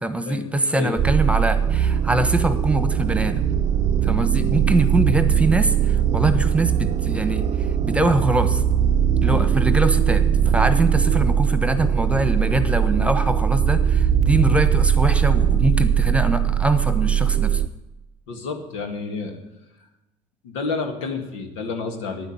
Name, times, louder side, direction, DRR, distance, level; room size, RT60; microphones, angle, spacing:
voice 1, 0.0-3.4 4.0-7.4 7.8-8.6 9.2-17.6, right 1 dB, 10° right, 11 dB, 1.2 m, -23 dB
sound 1, 1.0-17.7, right 8 dB, 45° right, 0.6 m, -20 dB
voice 2, 18.3-19.4 20.4-22.3, left 4 dB, 85° left, 5 dB, 2.0 m, -30 dB
9.7 x 8.1 x 9.7 m, 0.99 s
supercardioid pair, 80°, 16 cm